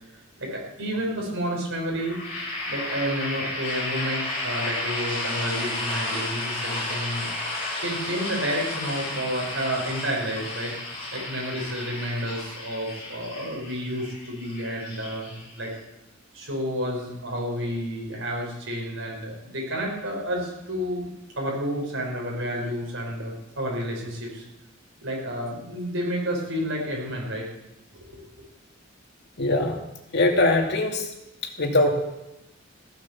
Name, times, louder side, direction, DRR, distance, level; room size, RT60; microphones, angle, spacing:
voice 1, 0.4-2.2 2.6-7.3 7.8-15.7 16.3-21.1 21.4-24.4 25.0-27.5 27.9-28.2, equal, 75° right, -1 dB, 6.0 m, -30 dB
sound 1, 1.9-15.8, left 2 dB, 30° left, 6.9 m, -32 dB
voice 2, 29.4-29.7 30.1-31.1 31.6-31.9, left 2 dB, 55° left, 2 dB, 2.5 m, -21 dB
15.5 x 11.5 x 7.2 m, 0.90 s
head